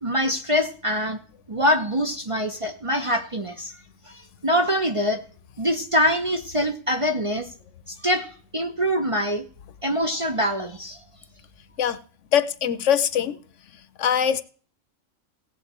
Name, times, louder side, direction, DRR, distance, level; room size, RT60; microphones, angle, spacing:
voice 1, 0.0-1.2 1.5-3.7 4.1-4.2 4.4-5.2 5.6-7.5 7.9-9.4 9.8-11.0, equal, 30° right, 5 dB, 0.7 m, -24 dB
voice 2, 12.3-13.4 14.0-14.4, left 9 dB, 70° left, 13 dB, 1.0 m, -22 dB
16.0 x 8.8 x 4.3 m, 0.43 s
omnidirectional pair, 1.3 m